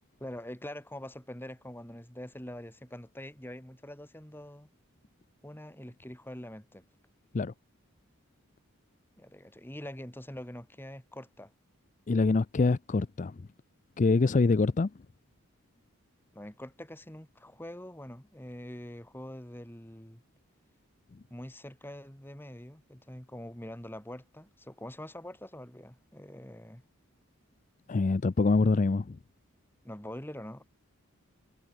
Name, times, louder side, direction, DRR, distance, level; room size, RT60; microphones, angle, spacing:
voice 1, 0.2-4.7 5.4-6.8 9.2-11.5 16.3-20.2 21.3-26.8 29.8-30.6, left 1 dB, 10° left, 2.5 m, -44 dB
voice 2, 12.1-13.3 14.0-14.9 27.9-29.2, left 3 dB, 35° left, 0.4 m, -25 dB
head